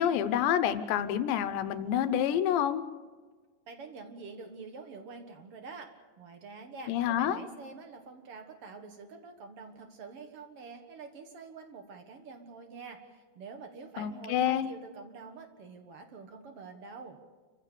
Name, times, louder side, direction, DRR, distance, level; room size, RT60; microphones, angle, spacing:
voice 1, 0.0-2.8 6.9-7.4 14.0-14.7, left 10 dB, 80° left, 11 dB, 3.2 m, -28 dB
voice 2, 3.7-5.9 6.2-17.2, right 4 dB, 65° right, 6 dB, 1.4 m, -46 dB
28.5 x 15.5 x 6.9 m, 1.4 s
omnidirectional pair, 5.1 m